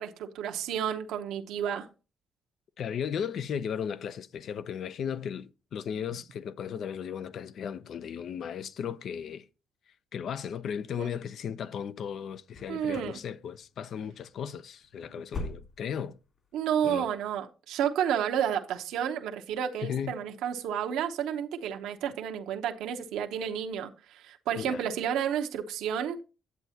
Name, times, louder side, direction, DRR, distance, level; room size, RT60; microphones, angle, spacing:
voice 1, 0.0-1.9 11.0-11.1 12.7-13.2 16.5-26.2, right 9 dB, 90° right, 0.9 m, -31 dB
voice 2, 2.8-9.4 10.1-16.2 16.8-17.1 19.8-20.2 24.5-24.8, left 8 dB, 65° left, 0.6 m, -36 dB
sound 1, 12.5-13.2 13.5-13.9 14.2-14.4 14.8-16.1 16.4-16.5 17.0-17.1, left 2 dB, 50° left, 3.2 m, -41 dB
9.6 x 7.9 x 2.8 m
cardioid pair, 90°, 0 cm